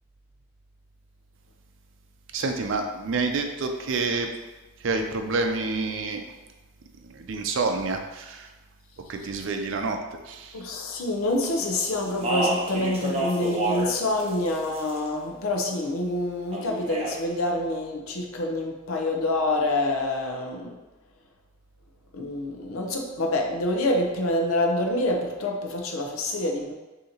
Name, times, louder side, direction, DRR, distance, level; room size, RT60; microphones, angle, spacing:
voice 1, 2.3-4.3 4.8-6.2 7.1-8.5 9.1-10.0 10.3-10.6, right 3 dB, 65° right, 5 dB, 0.5 m, -28 dB
voice 2, 10.5-20.8 22.1-26.7, left 1 dB, 80° left, 2 dB, 0.7 m, -27 dB
Speech, 12.0-13.9 14.2-15.1 16.5-17.2, right 1 dB, 30° right, 0.8 m, -28 dB
6.4 x 2.8 x 2.9 m, 1.1 s
head